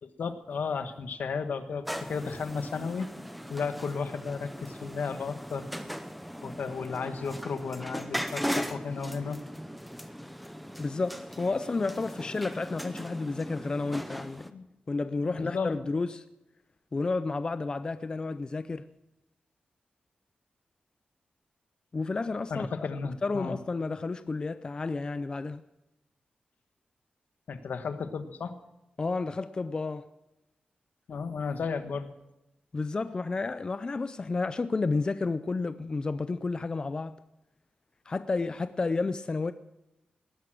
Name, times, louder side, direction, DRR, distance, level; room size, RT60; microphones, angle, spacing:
voice 1, 0.0-3.1 3.5-5.7 6.4-9.4 14.5-14.7 15.2-15.7 22.5-23.5 27.5-28.5 31.1-32.1, left 5 dB, 75° left, 1.3 m, -34 dB
sound 1, 1.8-14.5, equal, ahead, 0.7 m, -38 dB
voice 2, 10.8-14.5 14.9-16.2 16.9-18.9 21.9-25.6 29.0-30.1 32.7-37.2 38.1-39.5, left 3 dB, 30° left, 0.4 m, -31 dB
19.0 x 11.0 x 6.2 m
wide cardioid pair, 180°, 3 cm